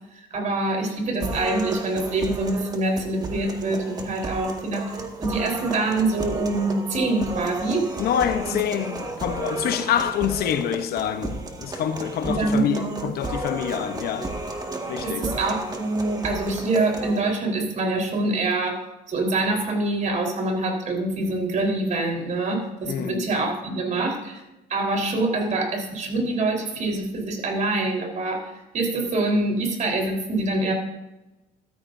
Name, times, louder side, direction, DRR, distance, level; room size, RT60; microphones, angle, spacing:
voice 1, 0.3-7.9 8.5-8.6 12.2-13.1 15.0-18.8 19.1-24.4 24.7-30.7, right 2 dB, 45° right, 4.1 m, -25 dB
sound 1, 1.2-17.2, right 2 dB, 25° right, 1.8 m, -33 dB
voice 2, 8.0-14.3 14.9-15.3 22.9-23.3, left 9 dB, 65° left, 1.0 m, -26 dB
14.0 x 13.5 x 2.7 m
cardioid pair, 110°, 17 cm